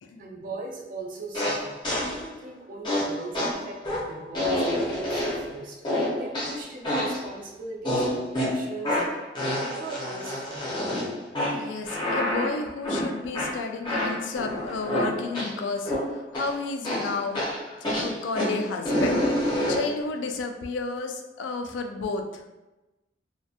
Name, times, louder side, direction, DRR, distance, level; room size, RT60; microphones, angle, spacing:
voice 1, 0.2-10.6, right 3 dB, 45° right, -3 dB, 0.5 m, -39 dB
sound 1, 1.3-2.2 2.8-5.5 5.8-7.3 7.8-15.6 15.8-16.5 16.8-20.0, left 1 dB, 25° left, 0.7 m, -28 dB
voice 2, 11.5-22.4, left 3 dB, 85° left, 5 dB, 0.3 m, -32 dB
2.6 x 2.1 x 2.4 m, 1.0 s
head